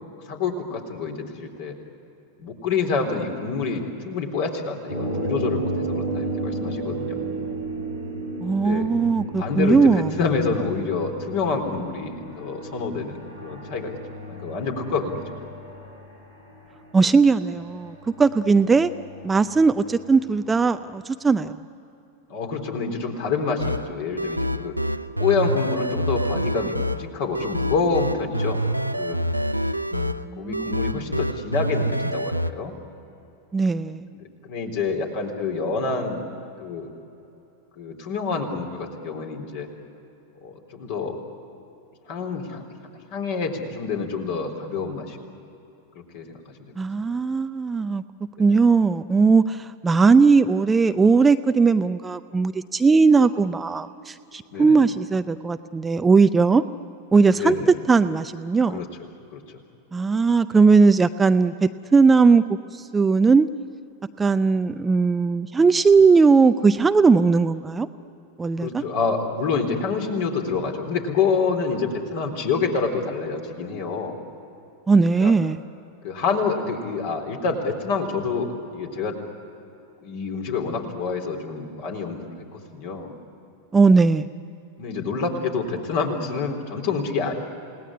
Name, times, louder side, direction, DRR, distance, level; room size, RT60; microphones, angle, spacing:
voice 1, 0.3-1.7 2.4-7.2 8.5-8.9 9.4-14.0 14.3-15.2 22.3-24.7 25.2-28.6 29.0-29.2 30.4-32.8 34.2-36.2 36.6-36.9 37.8-39.7 40.4-41.2 42.1-42.7 43.1-45.2 46.1-46.3 54.5-54.8 57.3-57.7 58.7-58.9 59.3-59.4 68.6-74.2 75.0-75.3 76.0-79.2 80.0-83.1 84.8-87.3, left 4 dB, 50° left, 3 dB, 3.7 m, -27 dB
sound 1, 4.9-20.3, right 2 dB, 90° left, 5.1 m, -33 dB
voice 2, 8.4-10.1 16.9-18.9 19.2-21.6 29.9-31.0 33.5-34.1 46.8-48.0 48.4-56.6 57.1-57.6 57.9-58.8 59.9-62.4 62.7-63.5 64.2-67.9 68.4-68.8 74.9-75.6 83.7-84.3, right 4 dB, 15° right, 11 dB, 0.5 m, -18 dB
sound 2, 23.6-32.5, equal, 90° right, 0.6 m, -26 dB
29.0 x 18.5 x 9.7 m, 2.9 s
figure-of-eight pair, 90°, 0 cm